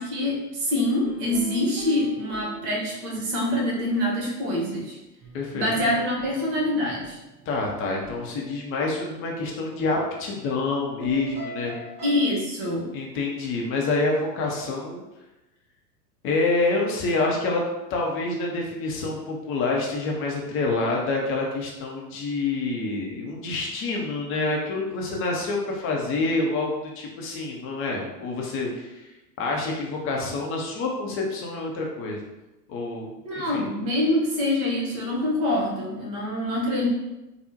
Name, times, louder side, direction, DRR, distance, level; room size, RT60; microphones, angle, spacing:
voice 1, 0.0-5.0 5.5-7.2 12.0-12.9 33.2-36.9, left 1 dB, 50° right, -2 dB, 1.1 m, -25 dB
sound 1, 1.0-3.9 5.2-9.7 11.0-12.2, right 2 dB, 30° right, 1.5 m, -43 dB
voice 2, 5.3-5.7 7.5-11.7 12.9-15.0 16.2-17.6 17.9-29.1 29.4-32.2 32.7-33.1 33.3-33.6, left 3 dB, 25° left, -1 dB, 0.5 m, -27 dB
3.4 x 2.1 x 2.8 m, 1.0 s
hypercardioid pair, 100°, 49 cm